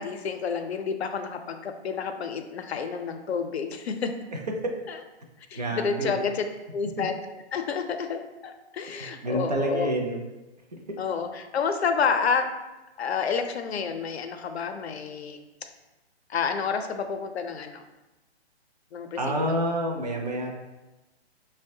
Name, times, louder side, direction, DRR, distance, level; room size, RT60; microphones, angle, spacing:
voice 1, 0.0-4.1 4.9-5.0 5.5-6.5 6.7-7.1 7.5-9.9 11.0-12.5 13.0-15.4 16.3-17.8 18.9-19.4, left 6 dB, 70° left, 7 dB, 0.5 m, -29 dB
voice 2, 5.5-6.2 7.0-7.1 8.9-10.2 10.7-11.0 19.2-20.5, right 1 dB, 40° right, 1 dB, 0.4 m, -28 dB
5.1 x 2.1 x 2.6 m, 1.1 s
hypercardioid pair, 175°, 33 cm